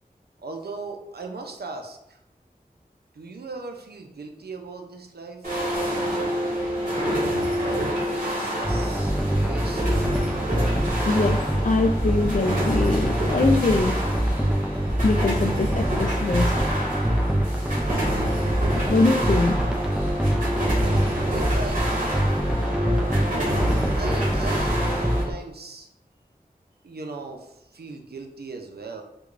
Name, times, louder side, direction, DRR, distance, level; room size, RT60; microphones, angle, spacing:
voice 1, 0.4-2.2 3.1-5.7 7.0-10.0 21.2-22.2 23.9-25.9 26.8-29.0, right 3 dB, 85° right, 4 dB, 0.5 m, -39 dB
sound 1, 5.4-25.2, equal, 55° right, 1.3 m, -28 dB
sound 2, 8.6-25.3, equal, 5° right, 0.4 m, -25 dB
voice 2, 11.1-13.9 15.0-16.5 18.9-19.6, left 3 dB, 50° left, 6 dB, 0.4 m, -23 dB
4.6 x 2.2 x 2.4 m, 0.82 s
wide cardioid pair, 55°, 16 cm